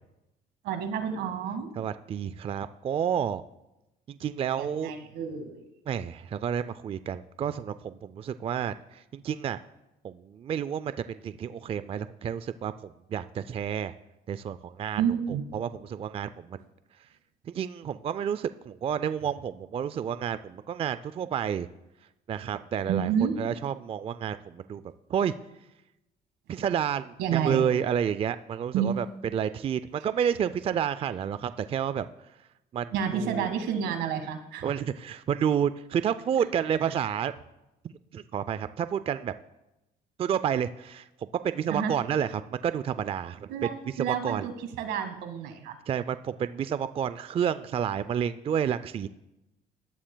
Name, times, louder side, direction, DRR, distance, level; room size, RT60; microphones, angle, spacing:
voice 1, 0.6-1.7 4.6-5.6 14.9-15.4 22.9-23.3 27.2-27.6 28.7-28.9 32.9-34.6 41.7-41.9 43.5-45.7, right 8 dB, 85° right, 7 dB, 1.7 m, -29 dB
voice 2, 1.8-3.4 4.1-4.9 5.9-9.6 10.0-12.7 13.1-13.9 14.3-15.0 15.5-16.6 17.5-21.7 22.3-23.1 23.4-24.8 25.1-25.3 26.5-29.1 29.3-32.1 32.7-33.5 34.6-37.3 38.1-39.3 40.2-41.1 41.4-43.5 44.0-44.5 45.9-49.1, right 8 dB, 35° right, 13 dB, 0.4 m, -30 dB
18.5 x 11.5 x 2.2 m, 0.93 s
cardioid pair, 110°, 17 cm